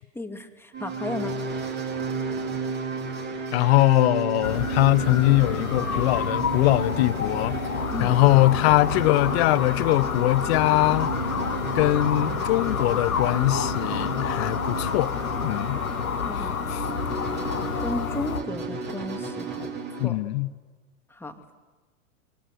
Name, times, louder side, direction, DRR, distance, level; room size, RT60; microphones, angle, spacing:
voice 1, 0.1-1.3 7.9-8.2 16.3-16.6 17.8-20.2 21.1-21.4, left 1 dB, 5° left, 2.3 m, -34 dB
sound 1, 0.7-20.1, right 4 dB, 25° right, 3.5 m, -33 dB
voice 2, 3.5-7.6 8.0-11.1 11.7-15.1 15.4-15.8 16.7-16.8 20.0-20.5, left 18 dB, 45° left, 1.0 m, -22 dB
sound 2, 4.4-18.4, left 6 dB, 85° left, 1.4 m, -29 dB
26.5 x 23.5 x 8.1 m
hypercardioid pair, 100°, 42 cm